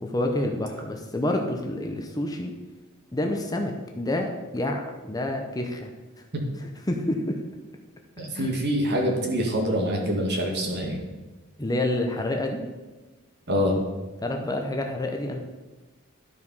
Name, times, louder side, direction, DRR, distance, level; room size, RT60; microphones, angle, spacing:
voice 1, 0.0-2.5 3.1-5.9 6.9-7.3 8.4-8.5 11.6-12.6 14.2-15.4, left 1 dB, 15° left, 3 dB, 0.8 m, -28 dB
voice 2, 8.2-11.0 13.5-13.8, equal, 50° right, 1 dB, 1.9 m, -25 dB
12.0 x 4.9 x 5.5 m, 1.2 s
head